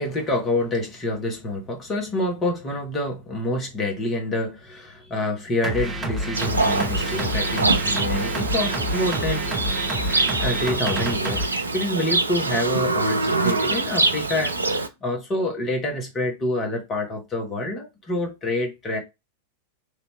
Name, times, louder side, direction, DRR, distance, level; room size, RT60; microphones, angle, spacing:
voice 1, 0.0-9.4 10.4-19.0, left 1 dB, 25° left, 1.3 m, -27 dB
sound 1, 5.6-11.5, equal, 10° right, 1.0 m, -28 dB
Livestock farm animals working animals, 6.3-14.9, right 3 dB, 80° right, 0.4 m, -24 dB
3.4 x 2.8 x 3.3 m
figure-of-eight pair, 90°, 0 cm